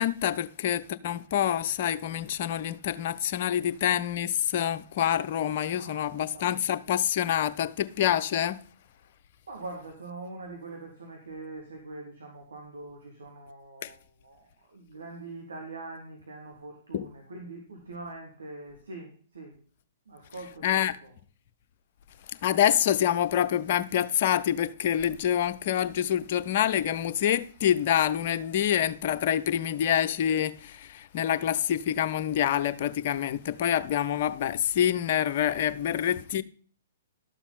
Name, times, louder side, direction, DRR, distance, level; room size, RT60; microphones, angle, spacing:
voice 1, 0.0-8.6 13.8-13.9 16.9-17.1 20.6-21.0 22.4-36.4, left 10 dB, 45° left, 0.6 m, -26 dB
voice 2, 5.7-6.5 9.5-19.6 20.1-21.1 35.9-36.0, right 2 dB, 70° right, 2.5 m, -43 dB
12.0 x 7.1 x 4.1 m
figure-of-eight pair, 115°, 0 cm